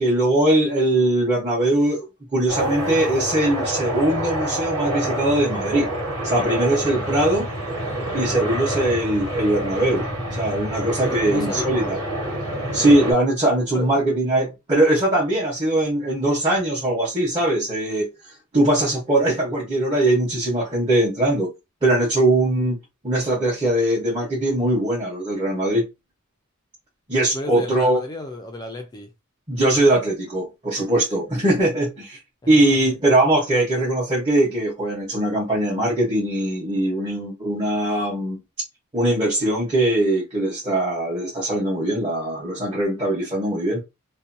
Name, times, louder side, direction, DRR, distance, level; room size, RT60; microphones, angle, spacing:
voice 1, 0.0-2.1 2.3-5.9 6.2-7.5 8.1-10.0 10.3-12.0 12.7-18.1 18.5-21.5 21.8-22.8 23.0-25.8 27.1-28.0 29.5-32.2 32.5-38.4 38.9-43.8, right 1 dB, 20° right, 0.9 m, -21 dB
sound 1, 2.5-13.1, right 1 dB, 90° right, 1.4 m, -27 dB
voice 2, 11.0-11.9 13.7-13.9 27.3-29.1, left 2 dB, 20° left, 0.4 m, -32 dB
2.6 x 2.2 x 2.6 m
head